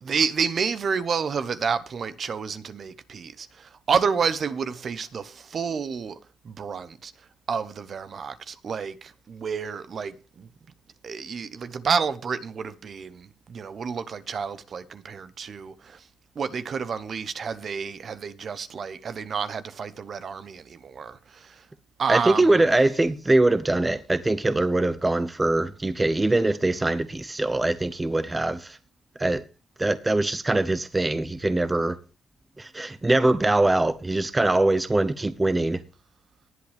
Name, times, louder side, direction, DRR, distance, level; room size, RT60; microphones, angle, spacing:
voice 1, 0.0-6.2 6.4-10.5 11.0-16.1 16.3-21.7 22.0-22.7, right 6 dB, 50° right, 1.0 m, -30 dB
voice 2, 22.1-28.8 29.2-29.4 29.8-32.0 32.6-35.8, right 2 dB, 15° right, 0.8 m, -22 dB
19.0 x 8.1 x 3.5 m
cardioid pair, 90°, 0 cm